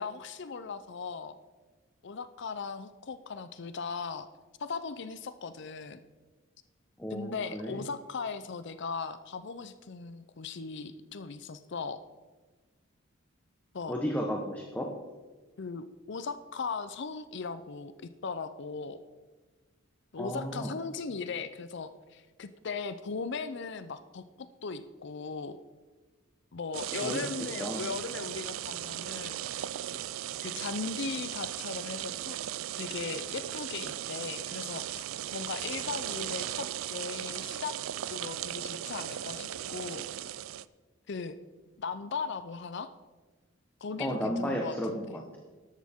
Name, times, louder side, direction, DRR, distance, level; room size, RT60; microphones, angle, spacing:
voice 1, 0.0-1.4 2.0-4.3 4.6-6.0 7.1-12.0 13.7-14.0 15.6-17.9 18.2-19.0 20.1-25.6 26.5-29.7 30.4-32.4 32.8-35.0 35.3-37.7 38.1-40.0 41.1-41.4 41.8-42.9 43.8-45.0, left 4 dB, 60° left, 12 dB, 0.5 m, -38 dB
voice 2, 7.0-7.8 13.9-14.9 20.2-20.7 27.0-27.2 27.6-27.9 44.0-45.4, equal, 10° left, 0 dB, 1.1 m, -33 dB
sound 1, 26.7-40.7, right 12 dB, 80° right, 0.4 m, -37 dB
14.0 x 11.5 x 3.6 m, 1.3 s
head